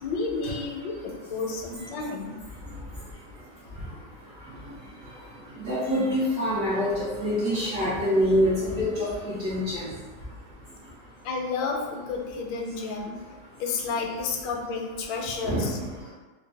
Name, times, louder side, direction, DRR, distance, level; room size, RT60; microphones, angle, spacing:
voice 1, 0.0-2.4 11.2-13.2 13.6-15.8, left 4 dB, 80° left, 1 dB, 1.3 m, -31 dB
voice 2, 5.6-9.8 15.4-15.7, equal, 55° right, -9 dB, 1.2 m, -25 dB
3.9 x 2.1 x 3.3 m, 1.3 s
omnidirectional pair, 2.0 m